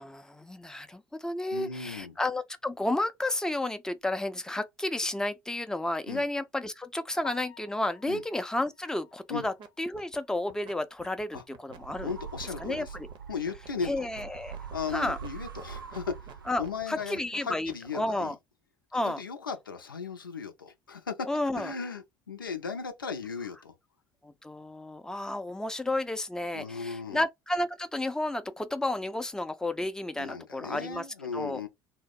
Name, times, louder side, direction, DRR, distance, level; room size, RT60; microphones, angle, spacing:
voice 1, 0.0-12.1 12.6-13.1 13.8-14.6 14.9-15.2 16.5-18.4 18.9-19.2 21.3-21.7 24.2-31.1 31.3-31.6, left 1 dB, 5° left, 0.5 m, -32 dB
voice 2, 1.5-2.2 6.1-6.3 8.1-8.2 9.3-9.4 11.3-11.4 12.0-12.9 13.3-14.0 14.7-18.3 19.0-21.3 21.6-23.7 26.5-27.2 30.2-31.7, left 5 dB, 90° left, 0.5 m, -37 dB
Piano, 7.2-11.2 11.6-11.7 12.2-12.3 12.6-12.7 15.8-15.9 24.4-24.6, left 10 dB, 40° left, 0.8 m, -54 dB
sound 1, 9.3-9.7 9.9-17.9, right 7 dB, 50° right, 0.7 m, -49 dB
sound 2, 11.7-17.1, right 6 dB, 85° right, 0.5 m, -43 dB
2.8 x 2.1 x 3.6 m
figure-of-eight pair, 60°, 11 cm